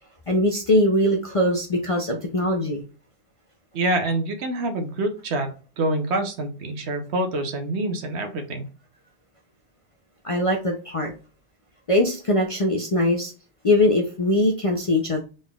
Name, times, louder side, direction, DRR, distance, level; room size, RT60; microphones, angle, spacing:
voice 1, 0.3-2.8 10.2-11.1 11.9-13.3 13.6-15.2, left 1 dB, 40° left, 3 dB, 0.5 m, -21 dB
voice 2, 3.7-8.6, right 2 dB, 70° right, 6 dB, 1.0 m, -26 dB
3.9 x 3.7 x 2.3 m, 0.35 s
omnidirectional pair, 1.2 m